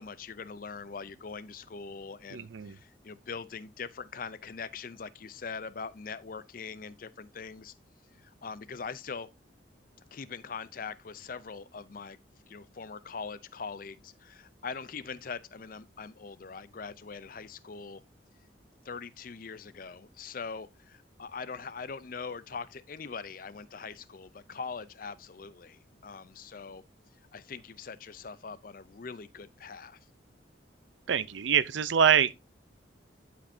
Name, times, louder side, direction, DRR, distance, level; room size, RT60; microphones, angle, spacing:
voice 1, 0.0-7.7 8.2-9.3 10.1-12.2 12.5-18.0 18.8-26.8 27.3-30.0, left 5 dB, 45° left, 0.5 m, -42 dB
voice 2, 2.3-2.8 31.1-32.4, right 8 dB, 75° right, 0.5 m, -25 dB
12.0 x 5.2 x 2.7 m
head